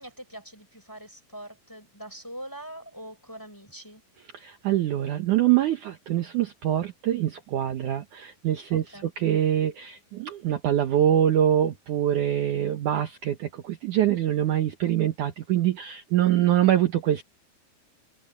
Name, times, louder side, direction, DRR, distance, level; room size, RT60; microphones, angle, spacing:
voice 1, 0.0-4.0 8.7-9.1, right 1 dB, 5° left, 4.3 m, -43 dB
voice 2, 4.3-17.2, right 11 dB, 65° right, 2.3 m, -24 dB
omnidirectional pair, 4.5 m